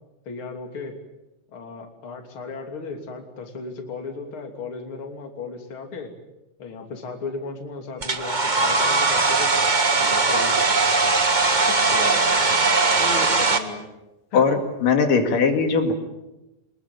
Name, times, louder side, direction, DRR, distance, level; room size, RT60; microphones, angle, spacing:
voice 1, 0.3-1.0 1.5-6.1 6.6-9.7 10.0-10.6 11.6-12.4 13.0-13.9 14.3-14.4, left 4 dB, 40° left, 4 dB, 3.6 m, -35 dB
Domestic sounds home sounds, 8.0-13.6, right 3 dB, 55° right, 0.5 m, -20 dB
voice 2, 14.3-15.9, left 5 dB, 85° left, 5 dB, 3.9 m, -20 dB
25.5 x 21.0 x 9.1 m, 0.96 s
omnidirectional pair, 3.7 m